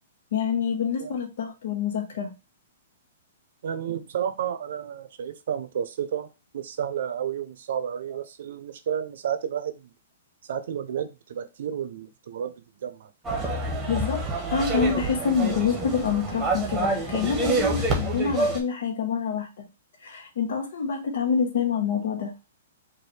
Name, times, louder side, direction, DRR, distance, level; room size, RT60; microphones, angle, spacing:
voice 1, 0.3-2.3 13.9-19.7 20.0-22.3, left 6 dB, 70° left, 1.1 m, -27 dB
voice 2, 3.6-6.3 6.5-9.9 10.5-12.5 12.8-13.1, right 9 dB, 65° right, 0.6 m, -31 dB
sound 1, 13.2-18.6, right 2 dB, 10° right, 1.0 m, -27 dB
4.6 x 2.5 x 3.2 m
hypercardioid pair, 155°, 0 cm